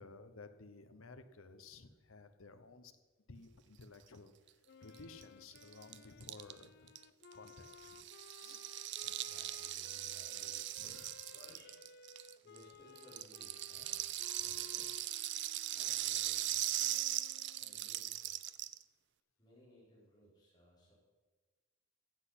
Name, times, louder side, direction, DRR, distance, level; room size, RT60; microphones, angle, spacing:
voice 1, 0.0-2.9 3.3-4.5 4.8-6.9 7.3-8.0 8.4-8.7 10.8-10.9 14.5-14.6, left 3 dB, 75° left, 10 dB, 0.9 m, -55 dB
Wind instrument woodwind instrument, 4.6-18.1, left 5 dB, 50° left, 0.4 m, -59 dB
Rattle (instrument), 4.9-5.0 5.2-5.3 5.5-12.6 13.0-18.8, right 14 dB, 55° right, 0.4 m, -39 dB
voice 2, 8.4-15.0 15.7-16.9 17.6-18.4 19.4-20.9, equal, 20° left, -7 dB, 5.0 m, -63 dB
14.5 x 8.0 x 5.8 m, 1.3 s
head